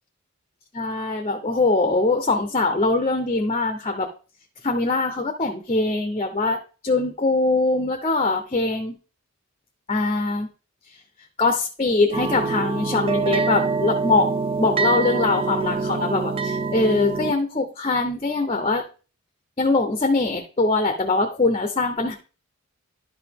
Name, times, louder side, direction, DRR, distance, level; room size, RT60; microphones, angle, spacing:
voice 1, 0.7-4.1 4.6-8.9 9.9-10.5 11.4-14.3 14.6-18.8 19.6-22.2, left 3 dB, 25° left, 6 dB, 0.7 m, -22 dB
sound 1, 12.1-17.3, right 4 dB, 25° right, 0.4 m, -25 dB
11.0 x 4.8 x 3.5 m, 0.36 s
head